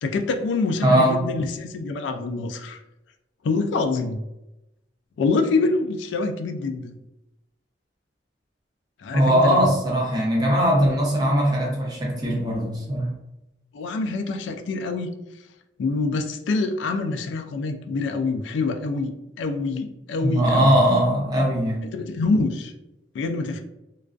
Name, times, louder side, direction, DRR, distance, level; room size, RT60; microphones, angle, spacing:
voice 1, 0.0-2.8 3.4-4.2 5.2-7.0 9.0-9.6 13.7-15.1 15.8-19.1 19.4-20.7 21.9-22.7 23.1-23.6, left 3 dB, 80° left, 7 dB, 0.3 m, -25 dB
voice 2, 0.8-1.2 9.1-13.1 20.2-21.8, equal, 20° right, -3 dB, 0.6 m, -20 dB
2.3 x 2.3 x 2.4 m, 0.92 s
head